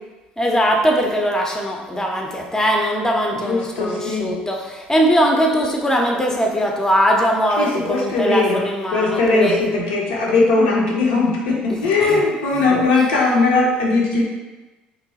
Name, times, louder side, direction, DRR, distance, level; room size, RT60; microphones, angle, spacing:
voice 1, 0.4-9.6 11.7-12.2 12.7-13.0, equal, 10° left, 0 dB, 0.5 m, -20 dB
voice 2, 3.4-4.3 7.6-8.6 8.9-14.2, left 3 dB, 75° left, -4 dB, 0.6 m, -19 dB
2.9 x 2.1 x 2.7 m, 1.2 s
figure-of-eight pair, 55°, 5 cm